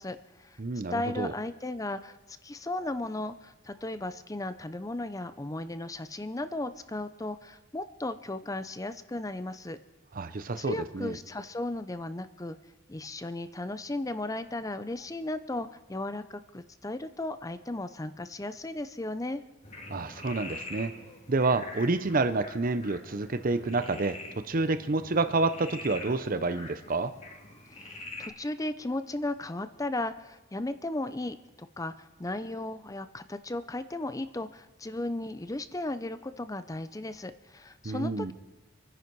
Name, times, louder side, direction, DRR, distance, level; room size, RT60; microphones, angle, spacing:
voice 1, 0.0-0.6 0.9-9.8 10.6-12.6 12.9-19.4 27.7-31.4 31.8-38.3, left 2 dB, 15° left, 12 dB, 0.6 m, -35 dB
voice 2, 0.6-1.3 10.1-11.2 19.9-20.9 21.3-24.2 24.5-27.1 37.8-38.3, right 3 dB, 40° right, 10 dB, 0.7 m, -28 dB
Frog, 19.6-28.3, left 2 dB, 35° left, 2.1 m, -45 dB
26.5 x 10.0 x 4.7 m, 1.1 s
head